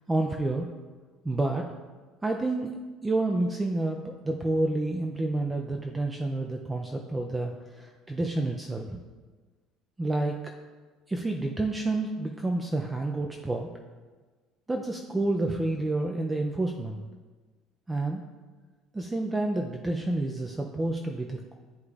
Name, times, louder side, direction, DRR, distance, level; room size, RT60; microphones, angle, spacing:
voice 1, 0.1-0.7 1.2-1.6 2.2-2.7 3.0-9.0 10.0-10.4 11.1-13.7 14.7-17.0 17.9-18.2 18.9-21.5, right 2 dB, 10° right, 2 dB, 0.4 m, -29 dB
11.5 x 4.9 x 2.4 m, 1.4 s
cardioid pair, 140°, 0 cm